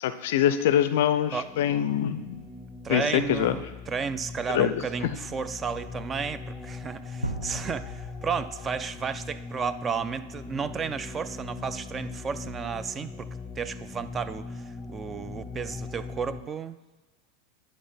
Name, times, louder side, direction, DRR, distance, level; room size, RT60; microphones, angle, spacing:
voice 1, 0.0-2.4 2.9-3.6 4.5-5.2, left 10 dB, 60° left, 13 dB, 0.4 m, -24 dB
sound 1, 1.2-16.4, left 3 dB, 20° left, 0.6 m, -40 dB
voice 2, 2.8-13.3 13.6-16.8, right 6 dB, 25° right, 13 dB, 0.4 m, -33 dB
sound 2, 7.2-9.2, right 1 dB, 90° right, 0.5 m, -37 dB
10.5 x 4.4 x 4.2 m, 1.2 s
figure-of-eight pair, 90°, 0 cm